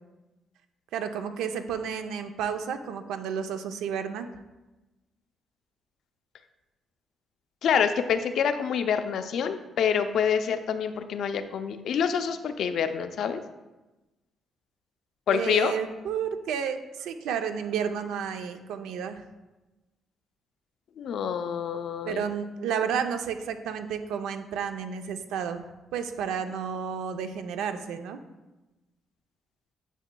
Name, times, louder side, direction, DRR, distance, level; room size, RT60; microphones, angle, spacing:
voice 1, 0.9-4.3 15.3-19.2 22.1-28.2, right 7 dB, 90° right, 8 dB, 0.5 m, -31 dB
voice 2, 7.6-13.4 15.3-15.7 21.0-22.2, left 7 dB, 70° left, 9 dB, 0.4 m, -27 dB
9.0 x 4.8 x 2.2 m, 1.1 s
cardioid pair, 90°, 0 cm